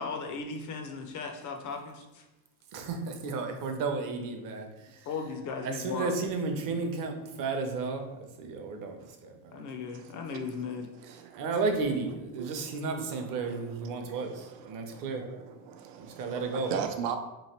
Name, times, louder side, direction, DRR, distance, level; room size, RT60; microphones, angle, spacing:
voice 1, 0.0-2.3 5.1-6.1 9.5-10.9, left 5 dB, 45° left, 4 dB, 0.4 m, -37 dB
voice 2, 2.7-5.1 5.6-9.5 11.4-15.2 16.0-16.7, right 4 dB, 45° right, 4 dB, 0.7 m, -33 dB
voice 3, 9.9-10.4 11.0-11.5 12.4-17.2, right 7 dB, 80° right, 6 dB, 0.7 m, -39 dB
3.1 x 3.0 x 4.3 m, 1.0 s
cardioid pair, 145°, 47 cm